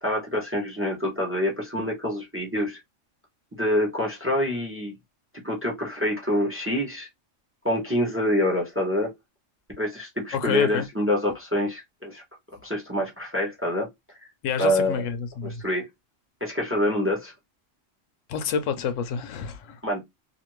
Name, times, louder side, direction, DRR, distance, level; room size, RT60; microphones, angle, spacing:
voice 1, 0.0-2.8 3.5-4.9 5.4-7.1 7.6-9.1 9.8-12.2 12.6-13.9 14.6-15.0 15.4-15.8 16.4-17.3 19.8-20.0, left 1 dB, 15° right, 0.7 m, -26 dB
voice 2, 10.3-10.8 14.4-15.6 18.3-19.8, left 7 dB, 75° left, 0.9 m, -28 dB
2.5 x 2.5 x 3.0 m
omnidirectional pair, 1.3 m